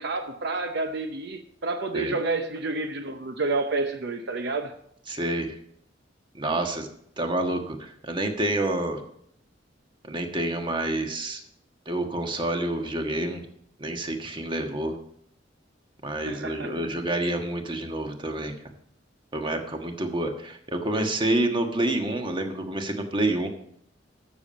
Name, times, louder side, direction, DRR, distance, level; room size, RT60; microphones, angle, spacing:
voice 1, 0.0-4.7 16.3-16.9, right 3 dB, 60° right, 0.8 m, -29 dB
voice 2, 5.1-5.5 6.3-6.9 7.2-9.0 10.0-11.4 11.8-13.4 13.8-14.9 16.0-18.5 19.3-23.5, right 1 dB, 25° right, 1.4 m, -28 dB
13.0 x 7.0 x 5.2 m
head